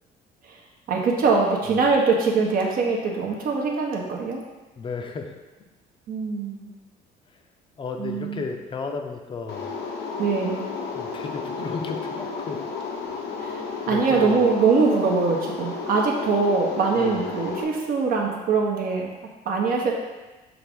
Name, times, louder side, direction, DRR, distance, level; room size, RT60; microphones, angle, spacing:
voice 1, 0.9-4.4 6.1-6.6 8.0-8.4 10.2-10.7 13.4-13.6 13.9-19.1 19.5-19.9, right 4 dB, 60° right, -1 dB, 0.8 m, -22 dB
voice 2, 4.8-5.3 7.8-9.7 10.9-12.7 13.9-14.5 16.9-17.2, left 4 dB, 30° left, 4 dB, 0.5 m, -33 dB
sound 1, 9.5-17.6, left 5 dB, 75° left, 0.7 m, -32 dB
5.9 x 2.5 x 3.5 m, 1.1 s
cardioid pair, 110°, 17 cm